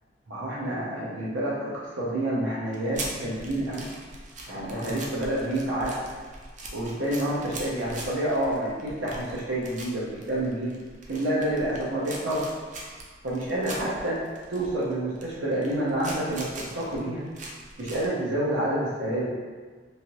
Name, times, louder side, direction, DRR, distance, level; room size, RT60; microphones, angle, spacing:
voice 1, 0.3-3.9 4.5-6.0 6.7-10.7 11.1-12.5 13.2-14.2 14.5-17.3 17.8-19.3, right 1 dB, 85° right, -6 dB, 0.7 m, -28 dB
sound 1, 2.7-18.1, right 2 dB, 40° right, 0.4 m, -41 dB
3.1 x 2.6 x 2.9 m, 1.5 s
head